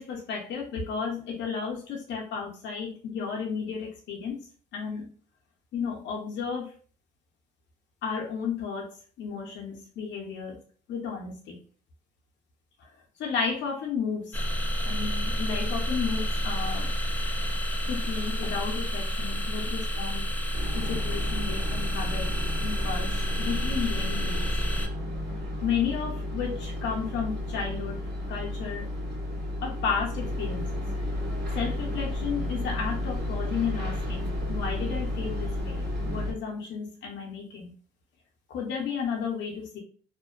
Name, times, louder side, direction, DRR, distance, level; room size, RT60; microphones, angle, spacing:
voice 1, 0.0-4.4 4.7-5.1 5.7-6.7 8.0-8.9 9.2-10.6 10.9-11.6 12.8-12.9 13.2-14.4 14.8-16.9 17.8-20.3 20.7-22.3 22.6-24.5 25.6-28.0 28.3-28.9 29.6-30.8 31.5-37.7 38.5-39.8, left 6 dB, 80° left, -1 dB, 0.5 m, -33 dB
sound 1, 14.3-24.9, equal, 10° left, 0.3 m, -29 dB
sound 2, 20.5-36.3, left 1 dB, 65° right, 0.9 m, -32 dB
2.5 x 2.1 x 2.3 m, 0.43 s
cardioid pair, 110°, 18 cm